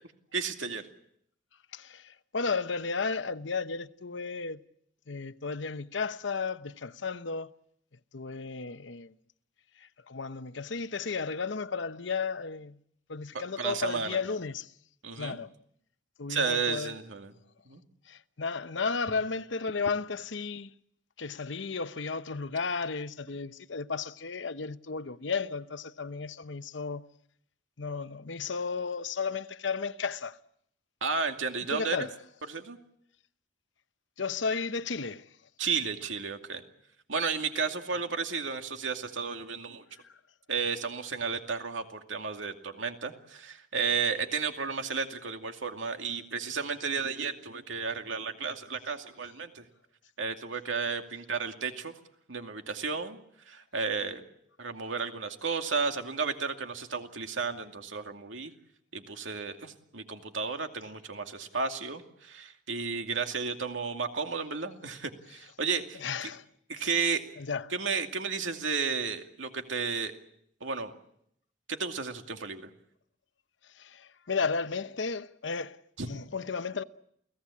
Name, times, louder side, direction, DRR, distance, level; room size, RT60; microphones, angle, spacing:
voice 1, 0.3-0.8 13.3-14.2 15.0-15.4 16.3-17.3 17.7-17.8 31.0-32.0 32.5-32.8 35.6-36.6 37.1-39.8 40.5-49.6 50.2-51.9 52.3-53.2 53.5-54.2 54.6-58.5 58.9-66.3 66.7-67.2 67.7-70.1 70.6-70.9 71.7-72.7 76.0-76.1, right 5 dB, 90° right, 2.5 m, -33 dB
voice 2, 1.7-4.6 5.1-7.5 8.1-9.1 9.8-12.8 13.1-14.7 15.2-15.5 16.2-16.9 18.1-20.7 21.2-27.0 27.8-30.4 31.7-32.1 34.2-35.3 66.0-66.4 67.4-67.7 73.8-75.8 76.1-76.8, left 4 dB, 80° left, 0.9 m, -33 dB
29.5 x 17.5 x 8.5 m
head